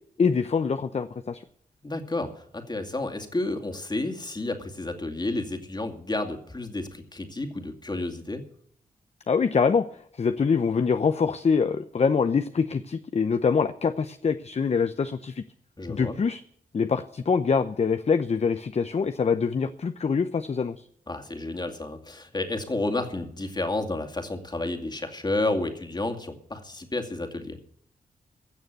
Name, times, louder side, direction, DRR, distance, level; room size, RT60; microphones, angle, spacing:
voice 1, 0.2-1.4 9.3-15.4 15.9-16.4 16.7-20.8, left 5 dB, 45° left, 10 dB, 0.7 m, -24 dB
voice 2, 1.8-8.4 15.8-16.2 21.1-27.6, left 2 dB, 30° left, 6 dB, 2.4 m, -31 dB
16.0 x 6.6 x 9.3 m, 0.64 s
cardioid pair, 65°, 15 cm